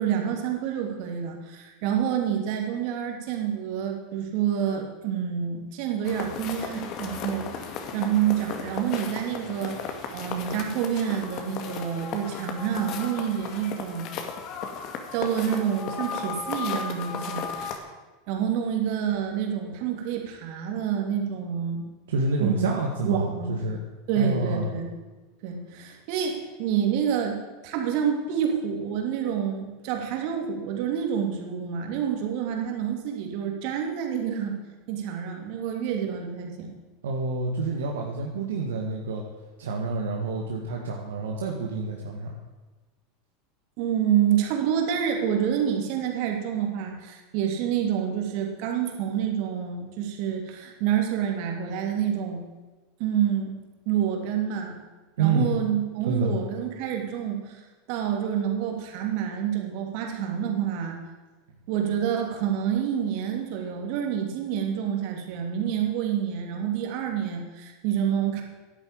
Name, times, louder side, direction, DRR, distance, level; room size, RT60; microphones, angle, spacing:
voice 1, 0.0-14.1 15.1-17.8 18.3-21.8 22.4-22.7 23.0-23.6 24.1-24.9 25.4-34.6 34.9-36.7 43.8-52.4 53.0-53.5 53.9-54.7 55.2-57.6 57.9-61.0 61.7-68.4, right 9 dB, 60° right, 2 dB, 2.9 m, -28 dB
sound 1, 6.0-17.8, left 6 dB, 50° left, 2.1 m, -35 dB
voice 2, 22.1-23.8 24.2-24.7 37.0-39.2 39.6-42.3 55.2-55.5 56.1-56.4, right 3 dB, 85° right, 0 dB, 1.7 m, -28 dB
11.5 x 9.0 x 8.7 m, 1.2 s
hypercardioid pair, 100°, 0 cm